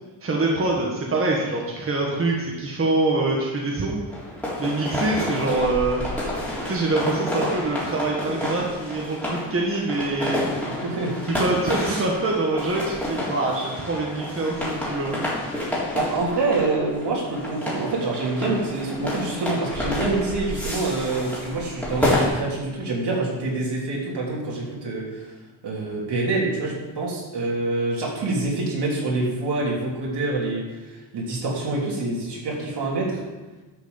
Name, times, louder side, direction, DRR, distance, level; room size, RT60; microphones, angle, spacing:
voice 1, 0.2-4.0 4.6-6.0 6.6-10.4 11.2-15.1, right 2 dB, 30° right, -2 dB, 1.6 m, -24 dB
sound 1, 4.1-22.3, left 1 dB, 5° left, 3.9 m, -29 dB
voice 2, 10.7-11.1 11.9-12.0 15.9-25.3 25.6-33.2, right 2 dB, 65° right, -3 dB, 3.5 m, -26 dB
11.5 x 6.1 x 7.2 m, 1.2 s
wide cardioid pair, 150°, 44 cm